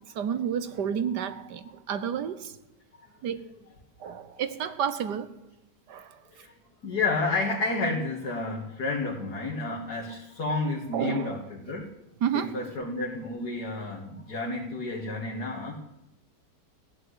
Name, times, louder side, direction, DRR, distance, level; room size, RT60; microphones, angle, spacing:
voice 1, 0.1-2.6 3.2-3.5 4.0-5.4 5.9-6.2 10.9-11.4 12.2-12.6 15.6-15.7, right 8 dB, 75° right, 13 dB, 1.6 m, -31 dB
voice 2, 4.0-4.4 6.2-11.9 12.3-15.8, left 3 dB, 65° left, -2 dB, 2.7 m, -31 dB
16.0 x 10.5 x 8.1 m, 0.91 s
omnidirectional pair, 1.8 m